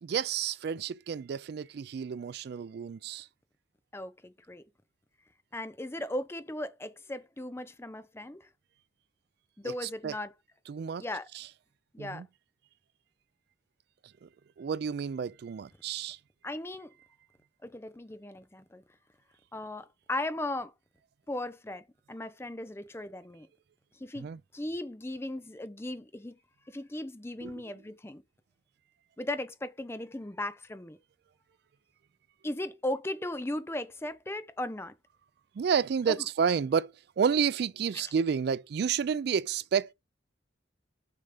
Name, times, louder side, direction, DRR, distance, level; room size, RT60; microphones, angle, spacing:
voice 1, 0.0-3.3 9.6-9.7 10.0-10.1 10.7-11.0 11.3-11.4 12.0-12.3 14.2-14.3 14.6-16.2 24.2-24.4 27.4-27.5 35.6-39.9, right 7 dB, 60° right, 0.3 m, -30 dB
voice 2, 3.9-4.6 5.5-8.5 9.6-10.3 11.0-11.3 11.9-12.2 16.4-16.9 17.6-18.8 19.5-20.7 21.3-23.5 23.9-26.4 26.7-28.2 29.2-31.0 32.4-34.9 36.1-36.2 37.9-38.1, left 1 dB, 15° left, 0.6 m, -37 dB
6.8 x 4.1 x 4.9 m
head